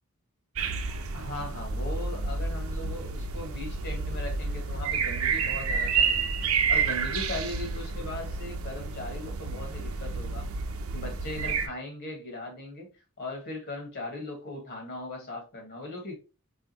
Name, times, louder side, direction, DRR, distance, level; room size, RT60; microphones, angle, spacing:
sound 1, 0.6-11.7, right 5 dB, 85° right, 0.8 m, -30 dB
voice 1, 1.1-6.3 6.7-10.5 10.9-12.9 13.2-16.1, left 2 dB, 55° left, 1.7 m, -38 dB
5.0 x 3.6 x 3.0 m
head